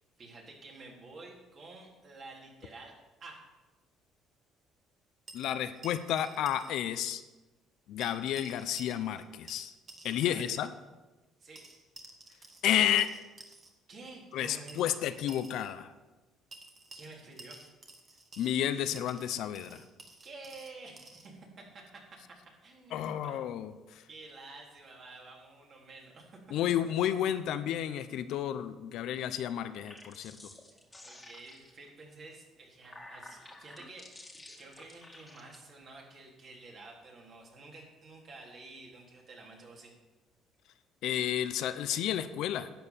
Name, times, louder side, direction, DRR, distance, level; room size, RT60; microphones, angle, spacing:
voice 1, 0.2-2.9 3.2-3.4 10.4-10.7 11.4-11.7 13.9-15.0 16.9-17.6 20.2-23.4 24.1-26.5 31.0-39.9, right 3 dB, 45° right, -1 dB, 3.6 m, -50 dB
voice 2, 5.3-7.2 7.9-9.7 10.0-10.7 12.6-13.1 14.3-15.9 18.4-19.8 22.9-24.0 26.5-30.4 41.0-42.7, left 11 dB, 70° left, 11 dB, 0.8 m, -31 dB
sound 1, 5.3-6.7 7.0-7.1 8.0-9.2 9.5-10.7 11.5-13.7 14.7-15.7 16.5-18.6 18.9-21.3, right 2 dB, 30° right, 1.8 m, -52 dB
sound 2, 29.7-31.9 32.6-35.6, left 2 dB, 10° left, 1.9 m, -52 dB
11.5 x 8.0 x 7.2 m, 1.2 s
cardioid pair, 110°, 0 cm